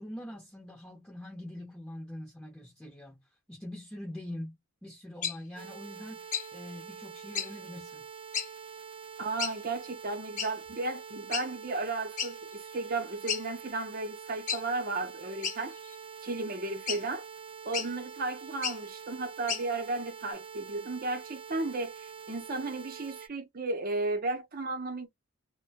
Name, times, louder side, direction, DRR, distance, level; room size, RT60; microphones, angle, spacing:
voice 1, 0.0-3.2 3.5-4.6 4.8-8.0, left 1 dB, 10° left, 0.7 m, -43 dB
sound 1, 5.2-5.4 6.3-6.5 7.3-7.5 8.3-8.5 9.4-9.6 10.4-10.5 11.3-11.5 12.2-12.3 12.7-12.8 13.3-13.4 14.5-14.6 15.4-16.0 16.9-17.0 17.7-17.9 18.5-18.8 19.5-19.6, left 7 dB, 35° left, 0.8 m, -32 dB
sound 2, 5.6-23.3, right 6 dB, 25° right, 0.3 m, -46 dB
voice 2, 9.2-15.8 16.2-17.2 17.6-25.1, right 3 dB, 45° right, 0.7 m, -34 dB
2.6 x 2.1 x 2.7 m
head